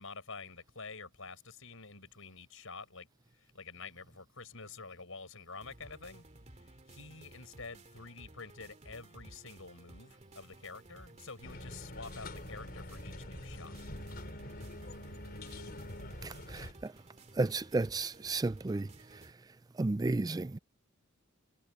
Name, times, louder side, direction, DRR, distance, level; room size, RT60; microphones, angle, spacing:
voice 1, 0.0-3.1 3.5-6.3 6.6-13.8, left 4 dB, 70° left, 7.4 m, -48 dB
sound 1, 5.6-19.3, right 1 dB, 35° right, 2.7 m, -56 dB
sound 2, 11.4-16.7, left 1 dB, 45° left, 4.2 m, -45 dB
voice 2, 16.2-16.7 17.4-18.9 19.8-20.6, right 2 dB, 20° right, 0.4 m, -32 dB
head